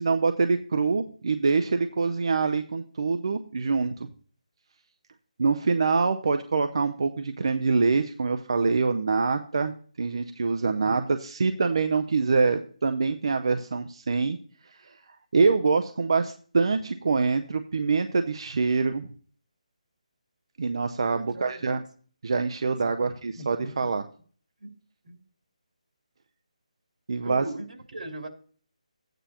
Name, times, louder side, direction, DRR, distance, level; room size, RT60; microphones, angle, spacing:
voice 1, 0.0-4.1 5.4-14.4 14.8-14.9 15.3-19.1 20.6-21.8 22.2-24.0 27.1-27.4, right 4 dB, 45° right, 8 dB, 0.5 m, -25 dB
voice 2, 21.1-21.8 22.8-23.9 24.6-24.7 25.0-25.2 27.2-28.3, right 2 dB, 80° right, 3 dB, 3.0 m, -40 dB
12.5 x 9.1 x 2.9 m, 0.44 s
hypercardioid pair, 180°, 4 cm